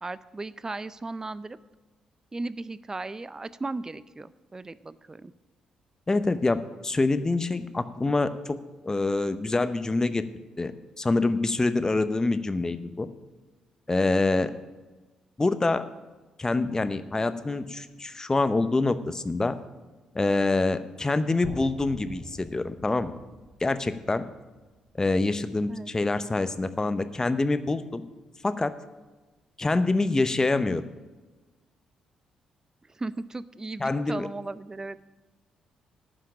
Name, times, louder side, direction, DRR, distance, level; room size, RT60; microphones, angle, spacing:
voice 1, 0.0-1.6 2.3-5.3 25.7-25.9 32.9-35.0, right 3 dB, 25° right, 17 dB, 0.4 m, -36 dB
voice 2, 6.1-8.6 8.8-10.2 10.6-10.7 11.0-13.1 13.9-14.5 15.4-15.8 16.4-19.5 20.1-23.1 23.6-24.2 25.0-28.0 28.4-28.7 29.6-30.8 33.8-34.3, left 3 dB, 25° left, 12 dB, 0.7 m, -26 dB
sound 1, 21.4-25.5, right 1 dB, 85° right, 3.1 m, -45 dB
10.0 x 5.8 x 8.4 m, 1.2 s
hypercardioid pair, 40°, 3 cm